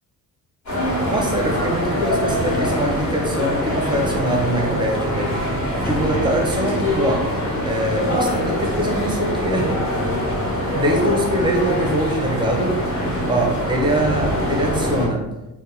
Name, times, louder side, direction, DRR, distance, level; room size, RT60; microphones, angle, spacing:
sound 1, 0.7-15.1, equal, 50° left, 1.4 m, -23 dB
voice 1, 1.1-5.3 5.8-7.3 7.6-9.8 10.7-12.8 13.3-15.3, right 1 dB, 15° right, -1 dB, 0.5 m, -23 dB
2.8 x 2.2 x 4.0 m, 0.95 s
cardioid pair, 145°, 37 cm